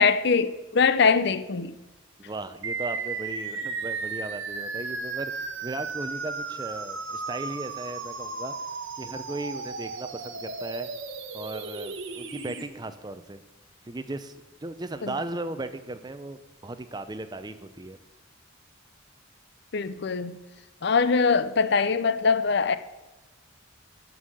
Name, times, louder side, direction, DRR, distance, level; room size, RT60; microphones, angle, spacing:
voice 1, 0.0-1.7 15.0-15.1 19.7-20.3 20.8-22.8, left 5 dB, 55° left, 0.5 m, -22 dB
voice 2, 2.2-8.6 9.0-10.9 11.3-13.4 13.8-14.4 14.6-18.0, right 2 dB, 20° right, 0.6 m, -36 dB
sound 1, 2.6-12.6, right 4 dB, 70° right, 1.2 m, -35 dB
13.0 x 5.6 x 7.6 m
head